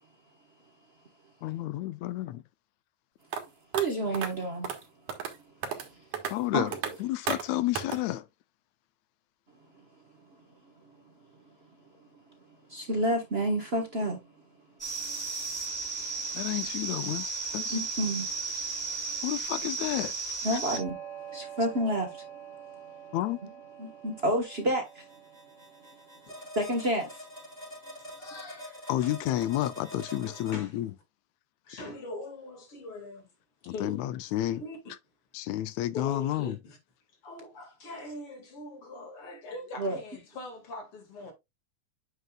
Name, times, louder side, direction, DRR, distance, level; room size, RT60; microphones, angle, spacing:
voice 1, 1.4-2.4 6.3-6.7 7.0-8.3 16.3-17.8 19.2-20.1 23.1-23.4 28.9-30.9 33.7-34.6 35.3-36.6, left 14 dB, 80° left, 1.8 m, -30 dB
sound 1, 3.3-3.4 3.7-3.8 4.1-4.3 4.6-4.8 5.1-5.3 5.6-5.9 6.1-6.3 6.7-6.9 7.3-7.4 7.8-8.0, right 7 dB, 85° right, 2.9 m, -33 dB
voice 2, 3.7-4.7 5.8-6.1 6.5-6.8 9.7-9.8 10.8-10.9 12.7-14.2 15.0-15.5 16.6-16.7 17.0-17.1 17.7-18.3 20.4-21.0 21.3-22.8 23.8-25.1 26.5-27.2 39.8-40.0, right 1 dB, 60° right, 0.6 m, -30 dB
sound 2, 14.8-30.6, right 4 dB, 5° left, 4.6 m, -38 dB
voice 3, 28.0-29.1 30.0-30.8 31.6-33.3 33.6-34.8 35.9-36.8 37.1-41.3, left 2 dB, 50° left, 3.0 m, -43 dB
9.0 x 6.7 x 2.3 m
omnidirectional pair, 3.5 m